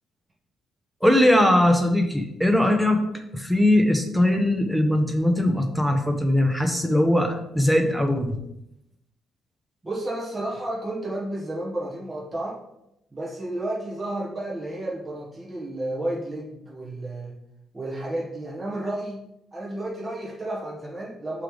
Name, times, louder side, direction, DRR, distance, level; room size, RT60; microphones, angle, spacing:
voice 1, 1.0-3.0 3.3-8.4, left 1 dB, 5° right, 5 dB, 0.9 m, -20 dB
voice 2, 9.8-12.6 13.1-17.4 17.7-19.2 19.5-21.4, right 1 dB, 25° right, -4 dB, 1.6 m, -32 dB
5.7 x 3.4 x 5.0 m, 0.83 s
cardioid pair, 90°, 0 cm